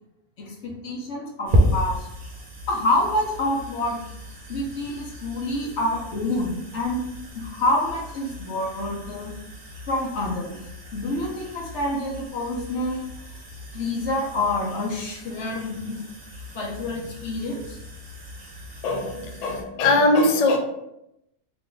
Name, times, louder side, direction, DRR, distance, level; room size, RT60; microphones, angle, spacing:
voice 1, 0.5-1.9 2.7-4.0 4.5-7.0 7.3-9.3 9.9-10.6 10.9-13.0 13.7-16.0 16.5-17.8, left 1 dB, 60° left, -2 dB, 1.2 m, -27 dB
sound 1, 1.5-19.6, equal, 45° right, 0.8 m, -33 dB
voice 2, 18.8-20.6, left 2 dB, 85° left, 3 dB, 0.3 m, -21 dB
3.3 x 2.6 x 3.8 m, 0.84 s
omnidirectional pair, 1.4 m